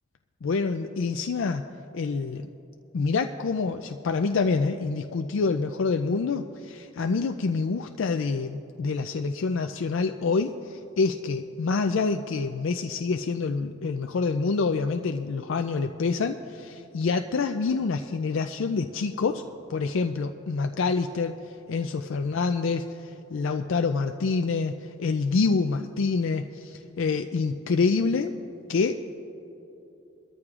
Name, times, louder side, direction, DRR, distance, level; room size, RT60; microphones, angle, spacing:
voice 1, 0.4-1.6 1.9-2.5 2.9-19.4 19.7-28.3 28.7-29.0, left 4 dB, 80° left, 6 dB, 0.4 m, -27 dB
22.5 x 13.5 x 2.4 m, 3.0 s
head